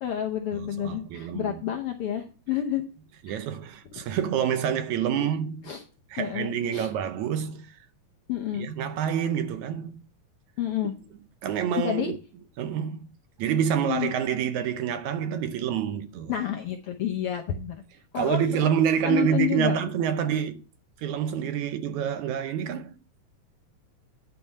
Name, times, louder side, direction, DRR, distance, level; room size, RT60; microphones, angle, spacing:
voice 1, 0.0-2.9 3.3-3.4 5.1-5.3 5.7-5.8 6.2-6.9 8.3-8.7 10.6-11.1 11.8-12.1 13.9-14.1 16.3-17.8 18.1-18.7 19.0-19.8, left 10 dB, 80° left, 1.2 m, -30 dB
voice 2, 0.5-1.6 3.3-5.7 6.1-7.8 8.5-10.0 11.4-12.2 12.6-13.1 13.4-16.3 18.2-20.6 21.0-23.0, right 8 dB, 75° right, 2.0 m, -27 dB
10.5 x 4.6 x 5.3 m
omnidirectional pair, 3.7 m